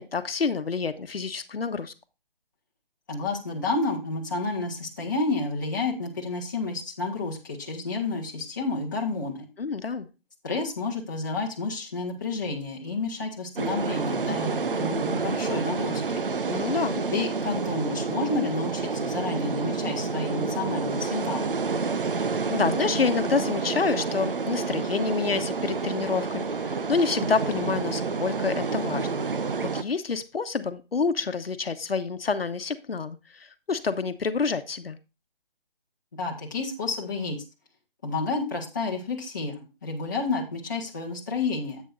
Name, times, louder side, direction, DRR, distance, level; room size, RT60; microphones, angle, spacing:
voice 1, 0.0-1.9 9.6-10.1 16.5-17.0 22.5-29.3 29.6-35.0, left 5 dB, 85° left, 10 dB, 1.0 m, -28 dB
voice 2, 3.1-9.5 10.4-16.0 17.1-21.5 36.2-37.4 38.0-41.8, left 3 dB, 20° left, -3 dB, 1.5 m, -30 dB
sound 1, 13.6-29.8, right 4 dB, 65° right, 0.8 m, -29 dB
10.5 x 8.4 x 2.5 m, 0.28 s
hypercardioid pair, 175°, 29 cm